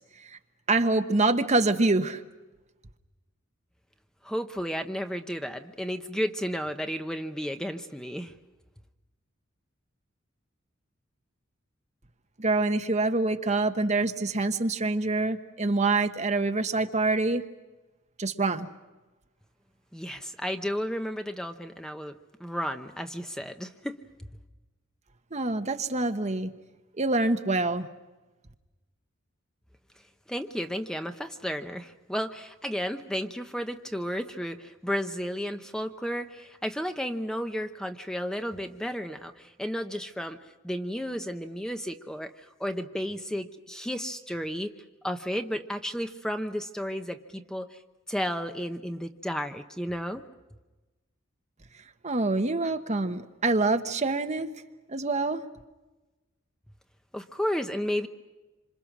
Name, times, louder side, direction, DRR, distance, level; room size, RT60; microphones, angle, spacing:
voice 1, 0.7-2.2 12.4-17.4 18.2-18.7 25.3-26.5 27.0-27.9 52.0-54.5 54.9-55.4, right 3 dB, 35° right, 7 dB, 1.3 m, -26 dB
voice 2, 4.2-8.3 19.9-22.1 22.4-24.0 30.3-40.4 40.6-44.7 45.0-47.8 48.1-50.2 57.1-58.1, equal, 5° left, 6 dB, 0.8 m, -33 dB
27.0 x 27.0 x 6.1 m, 1.1 s
head